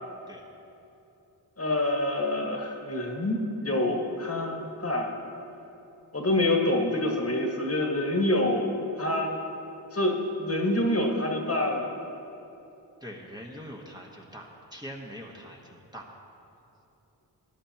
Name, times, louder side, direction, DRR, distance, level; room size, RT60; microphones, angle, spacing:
voice 1, 1.6-5.1 6.1-8.7 9.0-9.3 9.9-11.9, left 1 dB, 35° left, 1 dB, 1.7 m, -26 dB
voice 2, 13.0-16.1, equal, 10° right, -2 dB, 1.3 m, -43 dB
14.0 x 10.5 x 2.9 m, 2.9 s
cardioid pair, 45°, 41 cm